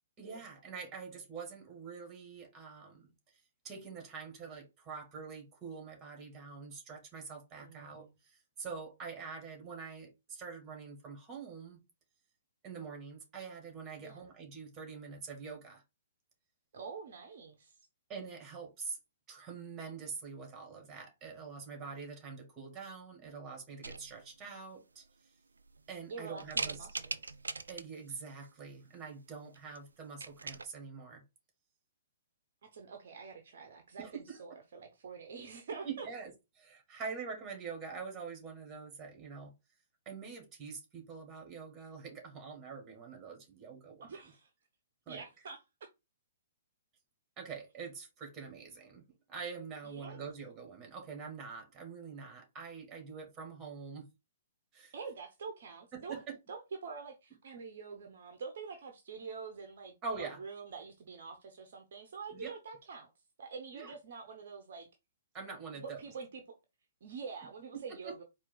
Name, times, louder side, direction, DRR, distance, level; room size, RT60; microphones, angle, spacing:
voice 1, 0.2-3.1 3.6-11.8 12.6-15.8 18.1-19.0 19.3-25.0 25.9-26.9 27.7-31.2 34.0-34.4 35.7-36.3 36.6-39.5 40.1-44.1 45.1-45.2 47.4-49.0 49.3-54.1 54.7-54.9 55.9-56.4 60.0-60.4 62.3-62.5 63.7-63.9 65.3-66.0 67.7-68.1, right 5 dB, 20° right, 2.1 m, -45 dB
voice 2, 7.6-8.1 14.0-14.2 16.7-17.8 26.1-27.4 32.6-36.1 44.0-44.5 45.1-45.9 49.8-50.3 54.9-56.2 56.5-63.1 63.4-64.9 65.7-66.6 67.0-68.2, right 5 dB, 55° right, 0.8 m, -46 dB
sound 1, 23.8-24.4 25.0-25.1 25.6-26.0 26.4-28.1 29.5-29.8 30.0-30.6, right 4 dB, 75° right, 0.4 m, -40 dB
4.4 x 2.7 x 3.8 m
figure-of-eight pair, 120°, 0 cm